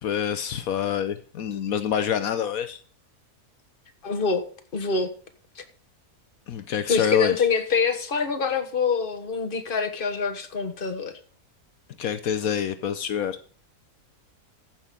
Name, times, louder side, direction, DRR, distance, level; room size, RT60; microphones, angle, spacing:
voice 1, 0.0-2.8 6.5-7.5 12.0-13.4, left 8 dB, 75° left, 12 dB, 1.2 m, -27 dB
voice 2, 4.0-4.4 4.7-5.1 5.6-5.7 6.9-11.1, left 5 dB, 40° left, 8 dB, 1.5 m, -25 dB
14.5 x 6.1 x 6.6 m, 0.43 s
omnidirectional pair, 1.5 m